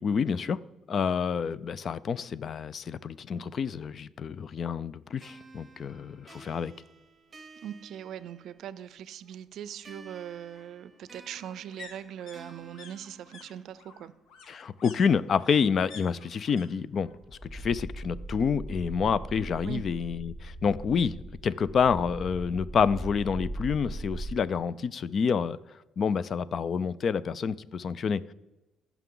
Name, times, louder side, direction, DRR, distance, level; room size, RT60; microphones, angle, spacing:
voice 1, 0.0-0.6 0.9-6.7 14.5-17.1 17.4-25.6 26.0-28.3, left 6 dB, 45° left, 19 dB, 0.4 m, -28 dB
sound 1, 5.2-8.8 9.8-13.9, right 3 dB, 25° right, 0.9 m, -53 dB
sound 2, 5.8-5.9 6.3-6.4 6.6-7.6 8.9-16.7 16.9-17.5 17.8-18.8 19.1-19.2, left 5 dB, 85° left, 1.1 m, -52 dB
voice 2, 7.6-14.1 19.6-19.9, right 10 dB, 70° right, 16 dB, 0.4 m, -41 dB
sound 3, 17.2-24.3, right 1 dB, 5° right, 3.8 m, -39 dB
15.0 x 5.9 x 3.8 m, 1.0 s
cardioid pair, 115°, 0 cm